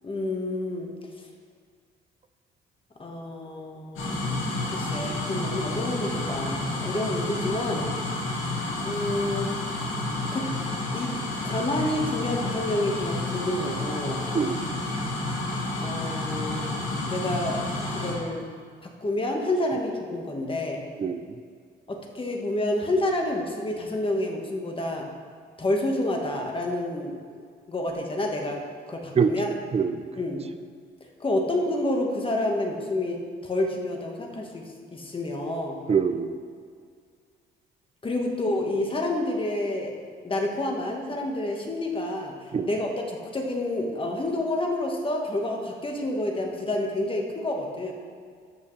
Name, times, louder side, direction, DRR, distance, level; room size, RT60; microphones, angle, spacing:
voice 1, 0.0-0.9 3.0-7.9 8.8-9.5 10.3-10.5 10.9-11.1 11.4-14.2 15.8-16.7 17.0-18.4 18.8-20.8 21.9-25.1 25.6-27.2 27.7-28.6 28.9-29.5 30.2-30.4 31.2-34.6 34.9-35.8 38.0-40.0 40.2-47.9, left 1 dB, 25° left, 1 dB, 1.4 m, -29 dB
sound 1, 4.0-18.1, left 2 dB, 85° left, 2.0 m, -30 dB
voice 2, 14.3-14.7 21.0-21.3 29.2-29.3 29.7-30.0 35.9-36.3 42.5-42.7, right 6 dB, 30° right, 10 dB, 0.5 m, -24 dB
13.0 x 5.8 x 3.2 m, 2.1 s
cardioid pair, 90°, 20 cm